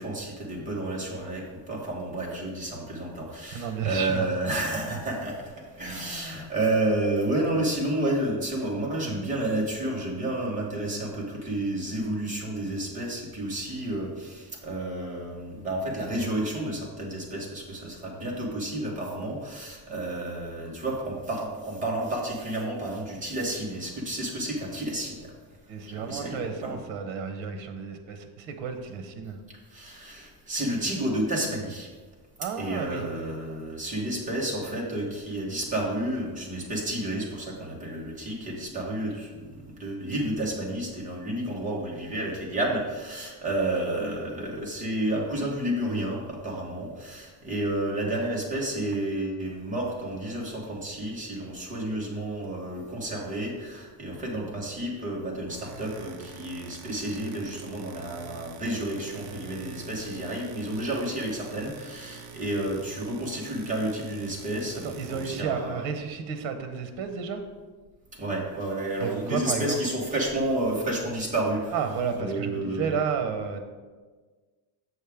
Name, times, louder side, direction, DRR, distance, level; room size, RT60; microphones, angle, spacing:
voice 1, 0.0-25.3 25.9-26.8 29.7-31.9 32.6-65.8 68.2-71.8 72.2-73.0, right 1 dB, 15° right, -3 dB, 1.1 m, -31 dB
voice 2, 3.5-4.3 25.7-29.4 32.4-33.0 64.8-67.4 69.0-69.8 71.7-73.6, right 6 dB, 75° right, 7 dB, 1.0 m, -32 dB
A creaky door moved very slowly, 48.9-49.2 55.2-65.4, right 4 dB, 40° right, 0.5 m, -46 dB
7.2 x 6.4 x 3.5 m, 1.4 s
cardioid pair, 180°, 47 cm